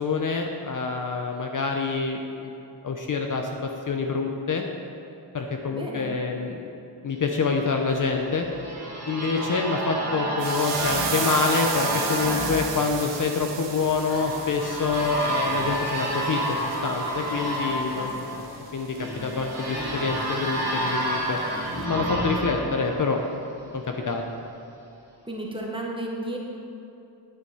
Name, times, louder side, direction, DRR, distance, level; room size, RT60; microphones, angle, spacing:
voice 1, 0.0-2.5 2.8-3.5 3.9-4.6 5.3-6.6 7.0-8.5 9.1-18.1 18.7-21.4 21.8-23.2 23.7-24.2, left 4 dB, 45° left, 3 dB, 0.7 m, -26 dB
voice 2, 5.7-6.1 17.9-18.1 25.3-26.4, right 1 dB, 10° right, -1 dB, 1.2 m, -33 dB
sound 1, 8.0-23.7, right 1 dB, 35° right, 1.9 m, -30 dB
sound 2, 10.4-21.3 21.7-21.8, right 6 dB, 70° right, 1.1 m, -35 dB
9.7 x 8.0 x 4.9 m, 2.8 s
wide cardioid pair, 155°, 46 cm